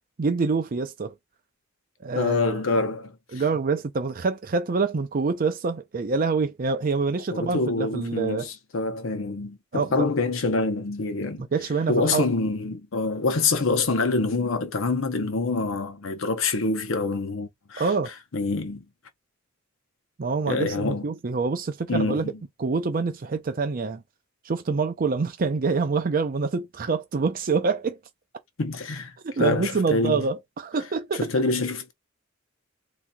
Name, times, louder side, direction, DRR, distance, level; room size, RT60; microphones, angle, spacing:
voice 1, 0.2-1.1 2.0-2.8 3.3-8.5 9.7-10.1 11.4-12.3 17.8-18.1 20.2-22.3 22.6-24.0 24.4-28.0 29.2-31.3, right 4 dB, 45° right, 0.5 m, -26 dB
voice 2, 2.1-3.1 7.3-11.5 11.9-17.9 18.3-18.8 20.5-21.1 21.9-22.3 28.6-29.1 29.4-30.3 31.1-31.9, left 3 dB, 80° left, 0.8 m, -26 dB
4.0 x 2.8 x 2.2 m
head